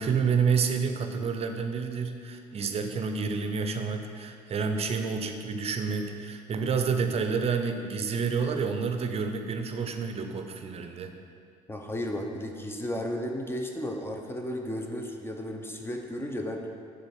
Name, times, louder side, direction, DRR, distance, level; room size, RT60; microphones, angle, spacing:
voice 1, 0.0-11.1, right 5 dB, 40° right, 6 dB, 0.6 m, -29 dB
voice 2, 11.7-16.7, equal, 15° left, 2 dB, 0.7 m, -34 dB
6.6 x 3.8 x 4.4 m, 2.3 s
supercardioid pair, 70°, 16 cm